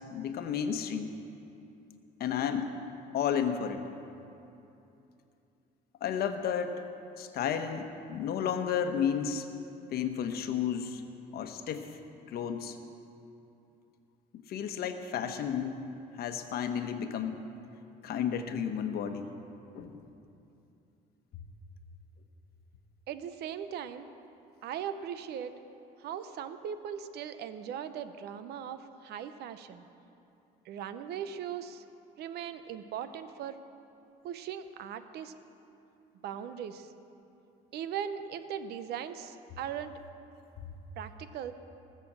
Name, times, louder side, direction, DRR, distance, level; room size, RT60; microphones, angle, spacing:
voice 1, 0.1-1.1 2.2-2.7 3.1-3.9 6.0-6.8 7.2-9.5 9.9-11.0 11.3-11.9 12.3-12.8 14.5-15.8 16.2-17.4 18.0-19.3 19.7-20.1 40.6-40.7, left 8 dB, 65° left, 7 dB, 1.0 m, -32 dB
voice 2, 23.1-24.1 24.6-25.5 26.0-29.9 30.6-31.8 32.2-33.6 34.2-35.3 36.2-36.9 37.7-39.9 41.0-41.5, right 9 dB, 75° right, 11 dB, 0.8 m, -39 dB
19.0 x 6.9 x 7.4 m, 2.8 s
cardioid pair, 110°, 17 cm